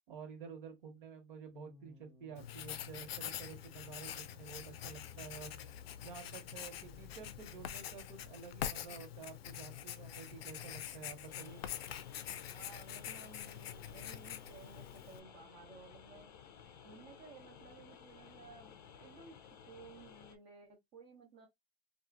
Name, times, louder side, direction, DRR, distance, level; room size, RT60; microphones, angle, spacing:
voice 1, 0.1-5.6 6.0-11.6, right 6 dB, 60° right, 1.4 m, -51 dB
sound 1, 1.5-8.3, left 6 dB, 10° left, 0.8 m, -57 dB
Writing, 2.4-15.2, left 10 dB, 90° left, 0.5 m, -45 dB
sound 2, 11.3-20.4, left 8 dB, 40° left, 0.5 m, -56 dB
voice 2, 12.3-16.3 16.8-19.4 19.7-21.5, right 4 dB, 25° right, 0.7 m, -56 dB
2.7 x 2.5 x 2.4 m
hypercardioid pair, 140°, 29 cm